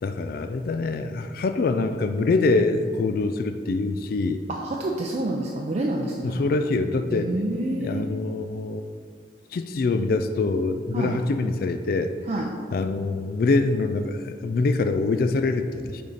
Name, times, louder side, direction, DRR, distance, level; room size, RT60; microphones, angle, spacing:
voice 1, 0.0-4.4 6.2-7.3 7.8-8.8 9.5-12.1 12.7-16.0, left 3 dB, 55° left, 9 dB, 0.3 m, -24 dB
voice 2, 4.5-6.4 7.1-8.0 10.9-11.1 12.3-12.4, right 1 dB, 40° right, -1 dB, 0.5 m, -28 dB
6.8 x 4.9 x 4.1 m, 2.3 s
head